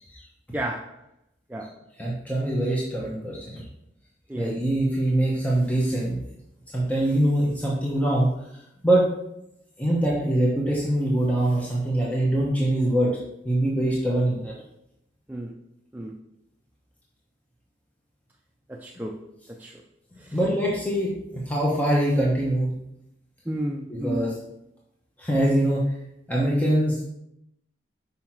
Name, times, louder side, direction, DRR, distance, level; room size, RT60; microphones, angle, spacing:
voice 1, 0.5-0.9 1.5-1.7 4.3-4.6 15.3-15.5 15.9-16.1 18.7-19.1 19.6-19.7 23.5-24.3, right 1 dB, 10° right, 0 dB, 0.4 m, -31 dB
voice 2, 2.0-3.6 4.4-6.2 6.7-8.3 8.8-9.1 9.8-13.1 13.4-14.5 20.3-22.7 23.9-24.4 25.2-25.9 26.3-27.0, right 1 dB, 10° left, -4 dB, 1.0 m, -23 dB
5.7 x 5.5 x 4.5 m, 0.82 s
head